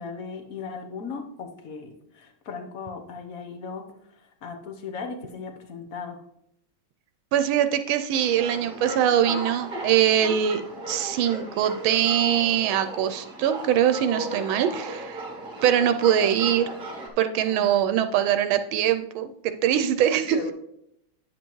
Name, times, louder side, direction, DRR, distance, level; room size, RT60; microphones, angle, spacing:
voice 1, 0.0-3.8 4.1-6.2 17.4-17.7 20.3-20.5, left 5 dB, 50° left, 5 dB, 1.2 m, -37 dB
voice 2, 7.3-10.6 10.9-15.2 15.6-16.7 17.2-20.5, right 10 dB, 85° right, 9 dB, 1.4 m, -22 dB
sound 1, 8.1-17.1, right 1 dB, 30° right, 1.2 m, -36 dB
9.5 x 7.6 x 3.1 m, 0.76 s
omnidirectional pair, 2.2 m